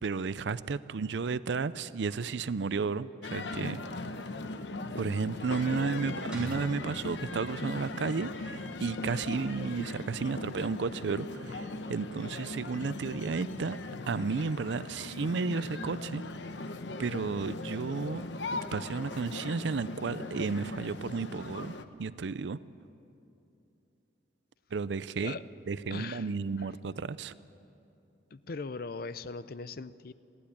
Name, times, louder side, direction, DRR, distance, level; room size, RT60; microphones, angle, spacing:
voice 1, 0.0-3.8 5.0-13.8 14.1-16.2 17.0-18.2 18.5-22.6 24.7-25.4 25.7-27.3, right 4 dB, 75° right, 16 dB, 0.5 m, -33 dB
sound 1, 3.2-21.9, left 2 dB, 80° left, 0.9 m, -39 dB
voice 2, 5.6-6.3 25.2-25.4 25.9-27.0 28.3-30.1, left 4 dB, 55° left, 15 dB, 0.5 m, -41 dB
sound 2, 6.3-8.3, equal, 5° right, 5.0 m, -47 dB
22.0 x 15.5 x 8.6 m, 2.7 s
head